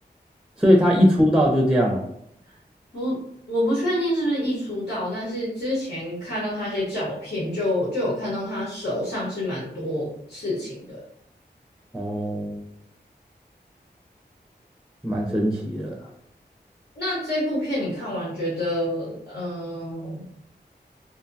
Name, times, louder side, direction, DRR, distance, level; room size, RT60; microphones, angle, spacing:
voice 1, 0.6-2.0 11.9-12.6 15.0-16.1, equal, 5° right, -1 dB, 0.5 m, -20 dB
voice 2, 3.5-11.0 17.0-20.2, left 1 dB, 80° left, -8 dB, 1.0 m, -27 dB
2.7 x 2.2 x 2.6 m, 0.73 s
wide cardioid pair, 50°, 18 cm